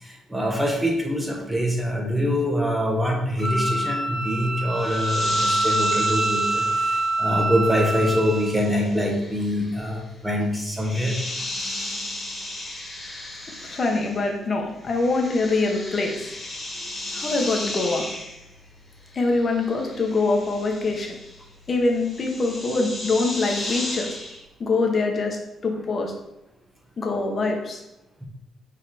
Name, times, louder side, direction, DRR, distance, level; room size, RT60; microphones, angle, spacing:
voice 1, 0.0-11.1 17.1-17.2, equal, 10° right, 0 dB, 1.5 m, -24 dB
Wind instrument woodwind instrument, 3.4-8.5, right 2 dB, 35° right, 2.1 m, -25 dB
sound 1, 4.7-14.4 14.7-24.4, left 1 dB, 25° left, 2.1 m, -35 dB
voice 2, 13.6-16.3 17.1-18.1 19.1-21.2 21.7-24.1 24.6-25.4 25.6-26.1 27.0-27.8, left 3 dB, 40° left, 2 dB, 1.4 m, -24 dB
5.6 x 4.0 x 4.3 m, 0.90 s
cardioid pair, 90°, 0 cm